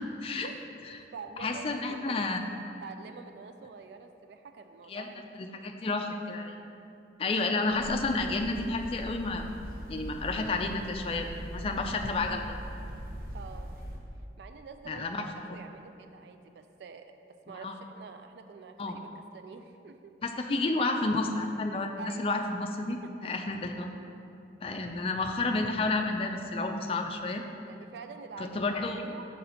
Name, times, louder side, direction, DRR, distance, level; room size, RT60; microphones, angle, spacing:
voice 1, 0.0-0.5 0.8-1.0 1.4-2.4 4.9-5.1 5.3-6.6 7.2-9.4 9.9-11.3 11.5-12.4 14.9-15.2 17.6-17.7 18.8-19.0 20.2-23.9 24.6-27.4 28.4-29.0, left 3 dB, 30° left, 4 dB, 0.3 m, -31 dB
voice 2, 1.1-2.2 2.8-5.2 13.3-13.7 14.4-19.1 19.3-20.1 22.0-22.3 23.0-23.3 24.9-25.0 27.7-29.3, right 5 dB, 70° right, 7 dB, 0.3 m, -47 dB
sound 1, 7.7-14.0, equal, 50° right, 0.8 m, -41 dB
6.5 x 4.1 x 4.3 m, 2.7 s
head